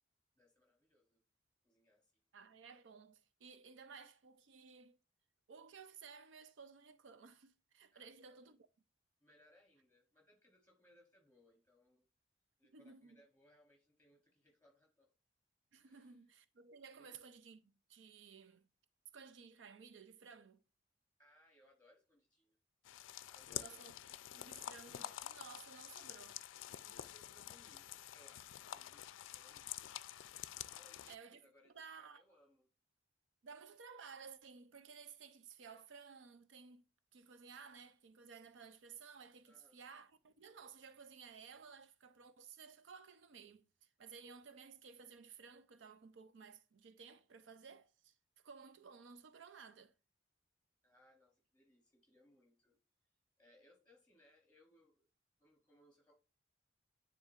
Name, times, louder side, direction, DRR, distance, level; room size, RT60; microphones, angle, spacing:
voice 1, 0.4-1.2 1.6-2.2 7.9-8.6 9.2-12.0 12.6-15.1 15.8-16.3 16.9-17.2 21.2-22.6 23.3-23.8 26.8-29.8 30.7-32.7 39.5-39.8 50.8-52.8 53.4-55.1 55.4-56.1, left 1 dB, 10° left, 3.7 m, -69 dB
voice 2, 2.3-5.0 5.5-8.6 12.7-13.2 15.7-18.6 19.1-20.6 23.6-23.9 24.3-26.4 31.1-32.2 33.4-36.8 37.1-49.9, right 5 dB, 75° right, 0.5 m, -56 dB
sound 1, 22.9-31.2, left 12 dB, 85° left, 0.4 m, -48 dB
10.0 x 3.8 x 2.4 m
head